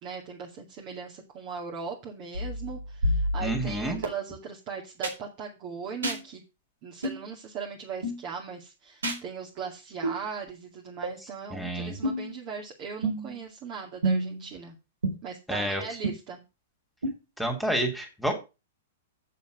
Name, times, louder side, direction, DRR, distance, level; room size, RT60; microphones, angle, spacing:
voice 1, 0.0-6.4 6.8-14.7 15.2-16.4, right 6 dB, 40° right, 0 dB, 2.4 m, -39 dB
sound 1, 2.3-4.1 5.0-5.1 6.0-6.2 7.0-7.2 8.0-8.2 9.0-9.2 10.0-10.2 11.0-11.1 12.0-12.3 13.0-13.4 14.0-14.4 15.0-15.1 16.0-16.1 17.0-17.1, right 1 dB, 85° right, 4.3 m, -29 dB
voice 2, 3.4-4.0 11.5-12.0 15.5-15.8 17.4-18.3, right 1 dB, ahead, 3 dB, 3.0 m, -29 dB
7.5 x 7.0 x 6.5 m, 0.28 s
hypercardioid pair, 115°, 0 cm